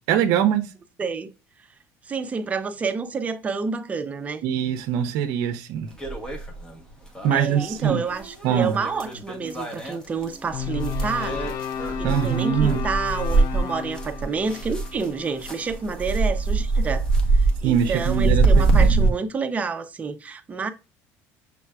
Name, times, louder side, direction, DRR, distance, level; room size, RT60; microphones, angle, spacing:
voice 1, 0.1-0.7 4.4-5.9 7.2-8.0 8.4-8.8 12.0-12.8 17.6-19.1, right 9 dB, 70° right, 0.6 m, -23 dB
voice 2, 2.0-4.4 7.3-11.6 12.0-20.7, right 5 dB, 25° right, 0.6 m, -29 dB
sound 1, 6.0-6.8 7.2-15.1 15.4-19.1, right 3 dB, 10° left, 1.0 m, -24 dB
sound 2, 10.5-16.8, left 8 dB, 55° left, 0.5 m, -33 dB
5.9 x 3.3 x 2.3 m
cardioid pair, 125°, 6 cm